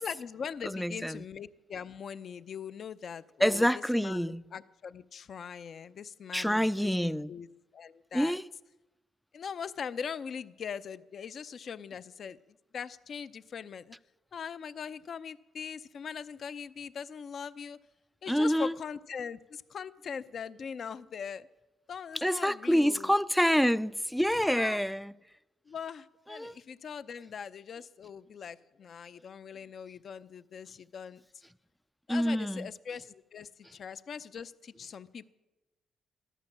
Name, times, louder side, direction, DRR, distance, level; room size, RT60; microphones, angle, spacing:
voice 1, 0.0-3.7 3.9-7.5 7.7-8.4 9.3-12.4 12.7-14.0 14.3-17.8 18.2-21.5 21.9-23.1 24.5-24.8 25.7-31.2 32.1-35.3, left 7 dB, 55° left, 0.6 m, -41 dB
voice 2, 0.6-1.2 3.4-4.4 6.3-7.3 8.1-8.4 18.3-18.8 22.2-25.1 26.3-26.5 32.1-32.7, equal, ahead, 0.4 m, -27 dB
14.5 x 12.0 x 7.4 m
cardioid pair, 90°, 0 cm